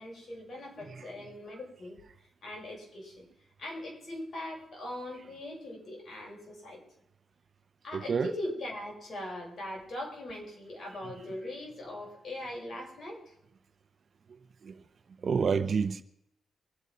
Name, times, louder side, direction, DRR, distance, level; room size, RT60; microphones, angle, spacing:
voice 1, 0.0-2.0 2.4-3.2 3.6-6.8 7.8-13.2, left 1 dB, 50° left, 6.8 m, -40 dB
voice 2, 7.9-8.3 14.6-14.7 15.2-16.0, right 6 dB, 50° right, 0.8 m, -28 dB
24.0 x 8.1 x 5.6 m
cardioid pair, 100°, 0 cm